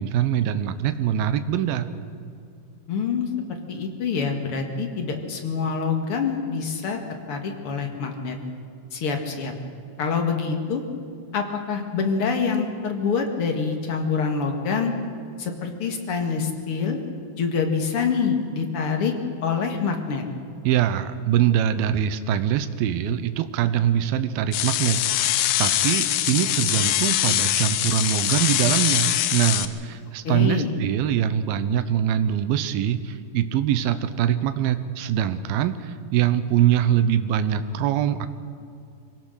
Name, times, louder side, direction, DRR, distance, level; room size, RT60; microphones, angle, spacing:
voice 1, 0.0-1.9 20.6-25.0 25.6-38.3, right 10 dB, 85° right, 11 dB, 2.7 m, -23 dB
voice 2, 2.9-3.3 3.7-7.0 7.3-8.4 8.9-9.5 10.0-10.8 11.3-14.9 15.4-17.0 17.4-19.1 19.4-20.2 30.2-30.7, left 5 dB, 45° left, 3 dB, 2.2 m, -26 dB
sound 1, 24.5-29.7, left 13 dB, 85° left, 2.5 m, -23 dB
23.5 x 17.5 x 6.5 m, 2.4 s
omnidirectional pair, 4.2 m